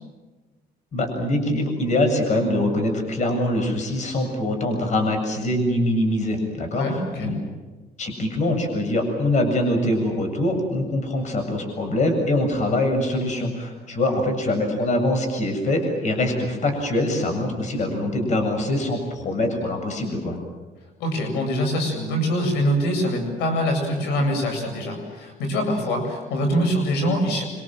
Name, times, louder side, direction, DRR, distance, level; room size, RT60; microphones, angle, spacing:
voice 1, 0.9-7.4 8.0-20.4, left 1 dB, 45° left, 5 dB, 7.7 m, -23 dB
voice 2, 6.7-7.3 14.1-14.2 21.0-27.4, equal, 85° left, 3 dB, 7.9 m, -24 dB
26.5 x 25.5 x 7.7 m, 1.2 s
cardioid pair, 110°, 17 cm